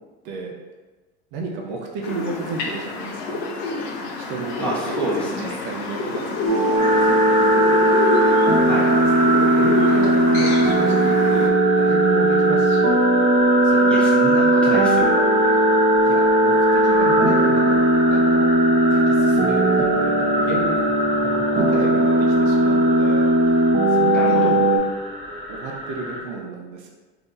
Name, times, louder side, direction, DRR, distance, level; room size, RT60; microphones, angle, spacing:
voice 1, 1.3-3.4 4.2-6.4 6.7-8.2 8.9-13.0 13.6-14.0 16.0-17.8 18.1-18.5 18.9-20.8 21.2-23.6 23.9-24.9 25.5-26.9, right 3 dB, 65° right, 0 dB, 0.6 m, -33 dB
sound 1, 2.0-11.5, left 3 dB, 70° left, 0.6 m, -28 dB
voice 2, 4.6-5.5 8.6-8.9 13.9-15.0 15.3-15.5 24.1-24.6, right 1 dB, 5° left, -8 dB, 1.3 m, -28 dB
sound 2, 6.5-24.8, right 1 dB, 30° right, 0.8 m, -18 dB
sound 3, 6.8-26.2, right 1 dB, 15° right, 1.4 m, -26 dB
3.5 x 2.8 x 2.5 m, 1.3 s
hypercardioid pair, 80°, 32 cm